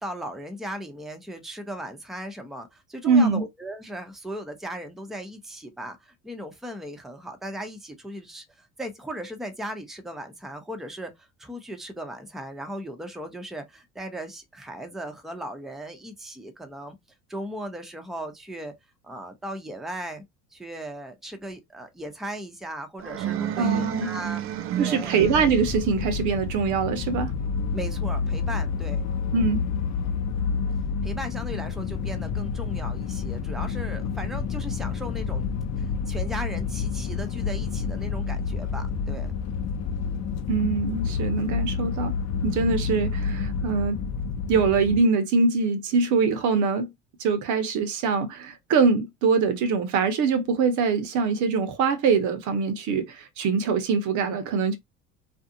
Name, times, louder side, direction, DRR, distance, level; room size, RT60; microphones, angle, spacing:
voice 1, 0.0-17.0 17.3-18.7 19.0-20.2 20.5-25.1 27.7-29.0 31.0-35.5 35.8-39.3, right 1 dB, ahead, 0.7 m, -37 dB
voice 2, 3.0-3.4 23.6-24.1 24.8-27.3 29.3-29.6 40.5-42.1 42.4-44.0 44.5-46.9 47.2-54.8, right 5 dB, 55° right, 0.8 m, -23 dB
sound 1, 23.0-25.9, right 11 dB, 40° right, 0.5 m, -30 dB
sound 2, 25.2-45.0, left 5 dB, 45° left, 0.7 m, -29 dB
2.5 x 2.3 x 2.7 m
hypercardioid pair, 80°, 35 cm